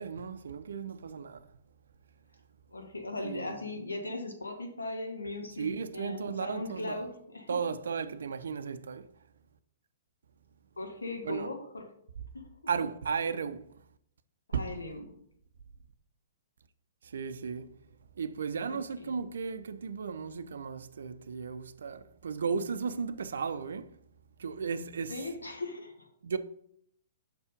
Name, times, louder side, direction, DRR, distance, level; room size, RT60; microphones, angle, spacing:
voice 1, 0.0-1.4 3.2-3.6 5.6-7.1 7.5-9.1 11.2-11.5 12.7-13.7 14.5-14.7 17.0-17.7 18.2-23.9 24.4-25.1 26.2-26.4, right 6 dB, 70° right, 0.5 m, -35 dB
voice 2, 2.7-7.6 10.8-11.9 12.3-12.5 14.5-15.1 18.7-19.2 25.1-26.1, left 2 dB, 90° left, 1.3 m, -39 dB
5.9 x 4.3 x 5.1 m
figure-of-eight pair, 120°, 0 cm